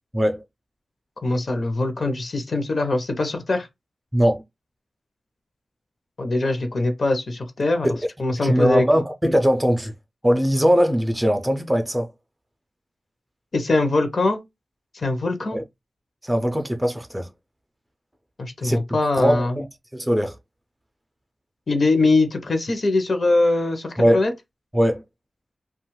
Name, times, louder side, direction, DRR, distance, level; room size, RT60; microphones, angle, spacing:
voice 1, 1.2-3.7 6.2-7.9 8.2-8.9 13.5-14.4 14.9-15.6 18.4-19.6 21.7-24.3, left 2 dB, 50° left, 0.7 m, -22 dB
voice 2, 8.3-9.9 10.2-12.1 15.5-15.6 16.2-17.3 18.6-18.8 19.2-19.7 19.9-20.4 24.0-24.2 24.7-25.0, equal, 10° right, 0.4 m, -20 dB
2.8 x 2.3 x 3.0 m
wide cardioid pair, 135°, 0 cm